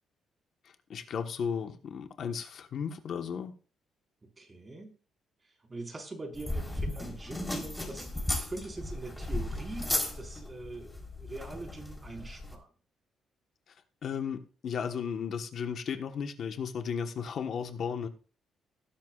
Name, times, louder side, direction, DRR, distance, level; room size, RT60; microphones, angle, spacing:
voice 1, 0.9-3.5 14.0-18.1, left 7 dB, 60° left, 1.3 m, -35 dB
voice 2, 4.2-4.9 5.4-12.7, right 2 dB, 25° right, 4.9 m, -43 dB
sound 1, 6.3-12.5, left 1 dB, 10° left, 3.9 m, -35 dB
19.0 x 10.5 x 2.5 m
cardioid pair, 90°, 0 cm